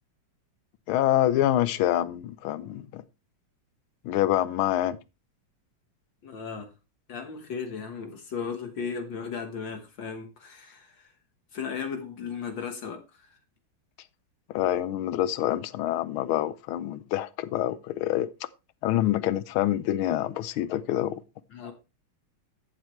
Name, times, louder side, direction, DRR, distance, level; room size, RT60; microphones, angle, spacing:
voice 1, 0.9-3.0 4.0-5.0 14.5-18.3 18.8-21.2, left 13 dB, 80° left, 1.5 m, -26 dB
voice 2, 6.2-6.7 7.1-11.1 11.5-13.3 21.5-21.7, left 6 dB, 65° left, 2.0 m, -36 dB
13.5 x 7.5 x 3.2 m
omnidirectional pair, 2.3 m